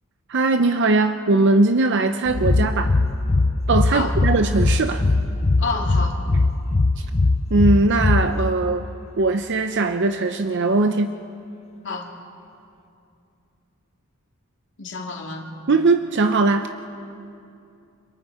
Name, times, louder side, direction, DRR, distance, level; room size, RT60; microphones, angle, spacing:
voice 1, 0.3-2.9 3.7-5.1 7.0-7.1 7.5-8.9 9.2-11.2 15.7-16.7, right 3 dB, 55° right, 8 dB, 0.6 m, -20 dB
sound 1, 2.3-8.8, left 2 dB, 30° left, 0.5 m, -21 dB
voice 2, 5.6-6.2 11.8-12.1 14.8-15.5, left 3 dB, 60° left, 0 dB, 2.7 m, -29 dB
30.0 x 26.0 x 4.8 m, 2.6 s
head